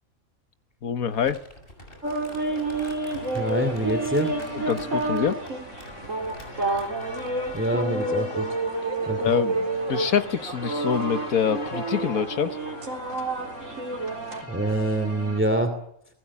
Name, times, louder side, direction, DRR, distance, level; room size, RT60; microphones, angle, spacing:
voice 1, 0.8-1.4 4.5-5.4 9.2-12.6, left 7 dB, 90° left, 1.8 m, -26 dB
Crumpling crinkling, 1.1-7.7, left 1 dB, 40° left, 6.9 m, -47 dB
sound 1, 1.9-15.4, left 2 dB, 60° left, 3.0 m, -43 dB
sound 2, 2.0-14.4, right 2 dB, 65° right, 4.3 m, -29 dB
voice 2, 3.3-4.3 7.5-8.6 9.0-9.3 14.5-15.8, right 1 dB, 10° right, 2.6 m, -25 dB
29.0 x 20.5 x 8.6 m
omnidirectional pair, 1.5 m